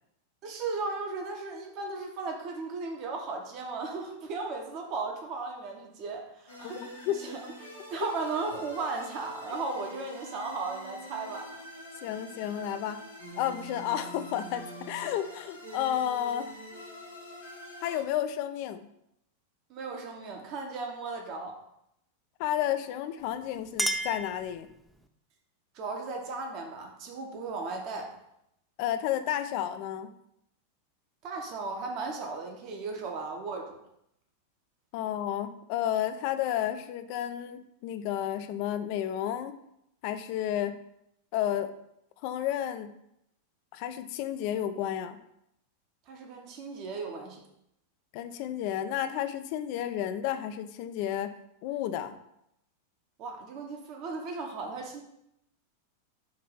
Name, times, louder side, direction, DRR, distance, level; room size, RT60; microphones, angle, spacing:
voice 1, 0.4-7.4 7.9-11.6 19.7-21.6 25.7-28.1 31.2-33.8 46.1-47.4 53.2-55.0, right 3 dB, 40° right, 2 dB, 1.1 m, -36 dB
sound 1, 6.5-18.0, equal, 80° left, 1.6 m, -45 dB
voice 2, 6.6-7.2 12.0-13.0 13.4-16.5 17.8-18.9 22.4-24.7 28.8-30.1 34.9-39.5 40.0-40.8 41.3-41.7 42.2-43.0 43.7-45.2 48.1-51.4 51.6-52.1, left 11 dB, 45° left, 10 dB, 0.5 m, -31 dB
Chink clink, 23.2-25.1, right 1 dB, ahead, 0.5 m, -34 dB
6.6 x 2.8 x 5.6 m, 0.78 s
figure-of-eight pair, 90°, 0 cm